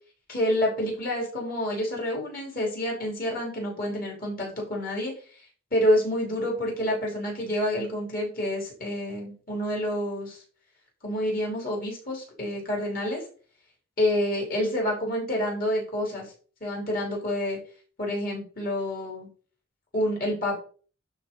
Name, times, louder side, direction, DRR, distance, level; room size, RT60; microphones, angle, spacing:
voice 1, 0.3-5.1 5.7-10.4 11.0-13.2 14.0-16.3 16.6-17.6 18.0-19.3 19.9-20.6, left 1 dB, 45° left, -1 dB, 3.3 m, -28 dB
11.5 x 3.9 x 3.8 m, 0.41 s
head